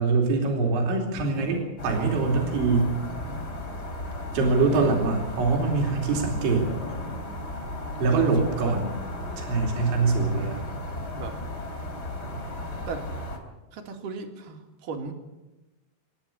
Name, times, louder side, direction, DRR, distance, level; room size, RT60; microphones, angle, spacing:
voice 1, 0.0-2.9 4.3-6.7 8.0-9.0 9.4-10.6, right 4 dB, 80° right, 0 dB, 5.2 m, -24 dB
sound 1, 1.1-1.9 2.4-5.6 6.1-7.5 7.8-9.7 10.3-12.4, left 3 dB, 75° left, 5.3 m, -40 dB
sound 2, 1.8-13.4, left 1 dB, 25° left, 3.4 m, -35 dB
voice 2, 8.1-8.7 11.1-11.4 12.9-13.1 13.7-15.1, right 4 dB, 55° right, 4 dB, 3.2 m, -36 dB
27.0 x 10.0 x 10.0 m, 1.1 s
omnidirectional pair, 5.3 m